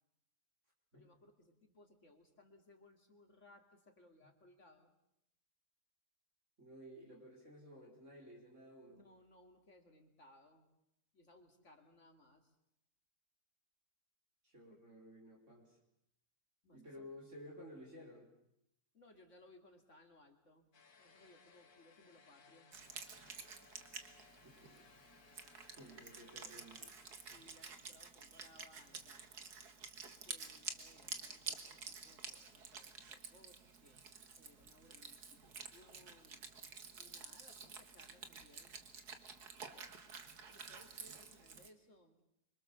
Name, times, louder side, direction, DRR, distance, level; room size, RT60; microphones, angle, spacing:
voice 1, 0.9-4.9 8.9-10.7 11.1-12.6 14.7-14.8 16.6-17.1 18.9-20.7 21.0-22.7 25.7-26.5 27.2-29.3 30.2-34.0 34.4-36.4 37.0-38.8 40.5-42.2, left 1 dB, 50° left, 4 dB, 2.9 m, -65 dB
voice 2, 6.6-9.0 14.4-15.8 16.7-18.3 24.4-24.8 25.8-26.8, equal, 50° right, -1 dB, 5.0 m, -55 dB
sound 1, 20.7-27.3, left 5 dB, 75° left, 2.0 m, -65 dB
Wind instrument woodwind instrument, 22.7-41.7, right 5 dB, 85° right, 2.3 m, -51 dB
26.5 x 24.5 x 7.0 m, 0.81 s
omnidirectional pair, 1.6 m